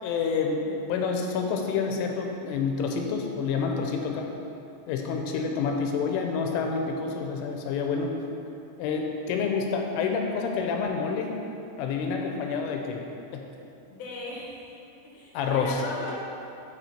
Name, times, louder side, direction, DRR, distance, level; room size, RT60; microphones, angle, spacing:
voice 1, 0.0-4.3 4.9-8.1 8.8-11.3 11.8-13.0 13.3-13.5 15.3-15.8, left 5 dB, 85° left, 2 dB, 3.1 m, -28 dB
voice 2, 13.9-14.6 15.1-16.1, left 2 dB, 65° left, -4 dB, 1.7 m, -37 dB
11.0 x 4.7 x 4.3 m, 2.7 s
omnidirectional pair, 5.7 m